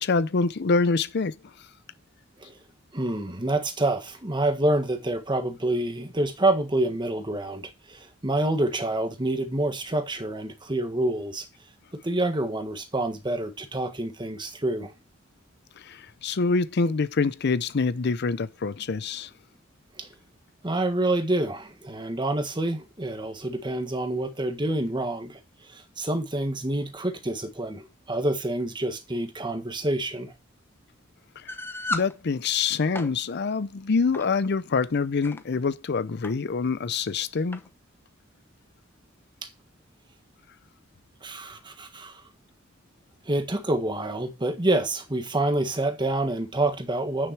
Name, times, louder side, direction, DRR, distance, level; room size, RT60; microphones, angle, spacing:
voice 1, 0.0-1.3 15.8-19.3 31.4-31.5 31.9-37.6, left 4 dB, 55° left, 0.6 m, -25 dB
voice 2, 2.9-11.5 11.9-14.9 20.0-20.1 20.6-25.4 25.7-30.3 39.4-39.5 41.2-42.2 43.2-47.3, right 1 dB, 25° right, 1.5 m, -27 dB
sound 1, 31.5-32.1 32.7-33.1 34.1-34.3 35.0-35.4 36.2-36.3 36.6-36.7 37.5-37.7, left 2 dB, 10° left, 1.0 m, -33 dB
9.1 x 6.7 x 4.6 m
head